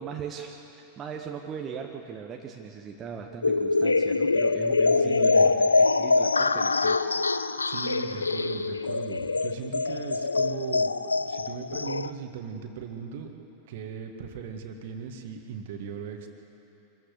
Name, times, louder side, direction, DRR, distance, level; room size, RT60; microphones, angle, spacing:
voice 1, 0.0-7.0, right 6 dB, 25° right, 2 dB, 1.3 m, -39 dB
sound 1, 3.4-12.1, left 3 dB, 80° left, 0.5 m, -24 dB
voice 2, 5.0-5.5 7.6-13.3 13.7-16.3, right 7 dB, 55° right, 5 dB, 1.9 m, -38 dB
25.0 x 15.0 x 8.3 m, 2.9 s
figure-of-eight pair, 90°, 0 cm